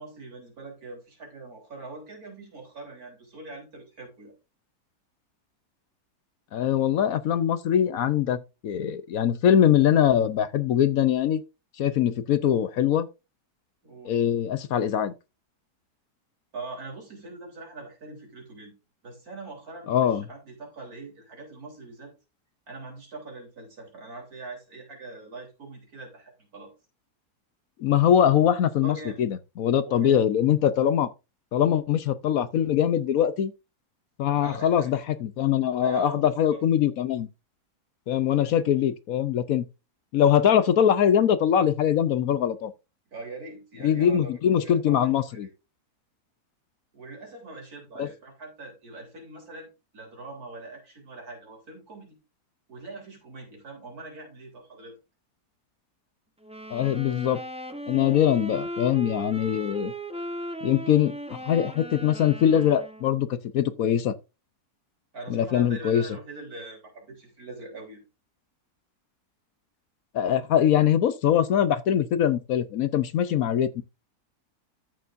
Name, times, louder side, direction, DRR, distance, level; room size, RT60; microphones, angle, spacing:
voice 1, 0.0-4.3 13.8-14.1 16.5-18.7 19.0-22.1 22.7-26.7 28.8-29.3 29.8-30.2 34.3-34.9 35.8-36.6 43.1-45.5 46.9-49.7 49.9-52.2 52.7-55.0 65.1-68.0, right 3 dB, 65° right, 4.1 m, -42 dB
voice 2, 6.5-11.4 11.8-13.1 14.0-15.1 19.9-20.2 27.8-31.1 31.5-33.5 34.2-37.3 38.1-39.6 40.1-42.7 43.8-45.5 48.0-48.1 56.7-57.4 57.9-59.9 60.6-64.1 65.3-66.1 70.1-73.8, left 9 dB, 65° left, 1.1 m, -22 dB
sound 1, 56.4-63.3, right 1 dB, 5° right, 0.6 m, -37 dB
13.5 x 6.8 x 2.6 m
omnidirectional pair, 1.7 m